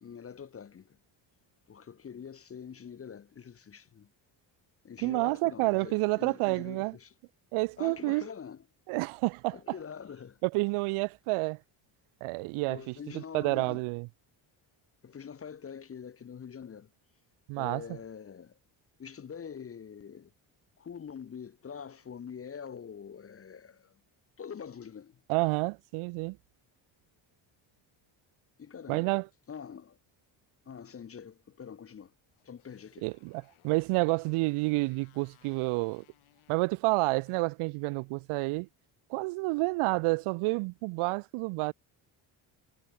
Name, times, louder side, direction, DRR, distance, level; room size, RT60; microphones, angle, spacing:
voice 1, 0.0-1.0 1.7-4.1 4.8-7.1 7.8-8.6 9.5-10.4 12.7-13.8 15.0-16.9 17.6-18.6 19.0-20.3 20.8-24.0 24.4-25.2 28.6-29.2 29.5-30.0 30.7-32.1 32.4-33.1, left 7 dB, 30° left, 0.7 m, -45 dB
voice 2, 5.0-7.0 7.5-8.3 8.9-9.6 10.4-11.6 12.2-14.1 17.5-17.8 25.3-26.4 28.9-29.3 33.0-36.0 36.5-38.7 39.1-41.7, right 25 dB, 85° right, 0.6 m, -29 dB
Motorcycle, 32.3-38.8, left 14 dB, 75° left, 4.1 m, -66 dB
cardioid pair, 95°, 49 cm